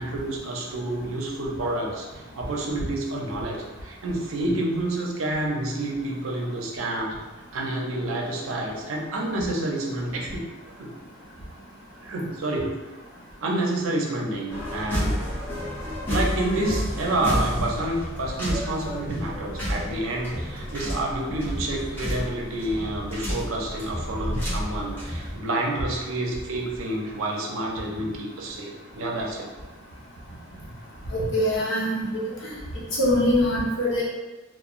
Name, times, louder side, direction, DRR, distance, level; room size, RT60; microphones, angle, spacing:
voice 1, 0.0-7.1 7.5-10.5 10.8-10.9 12.0-12.7 13.4-15.2 16.1-29.5, right 1 dB, 80° right, -1 dB, 0.5 m, -29 dB
sound 1, 14.5-25.3, equal, 10° left, 0.9 m, -31 dB
voice 2, 31.1-32.5 33.0-34.0, left 1 dB, 60° left, -6 dB, 0.9 m, -23 dB
3.0 x 2.1 x 2.4 m, 1.2 s
head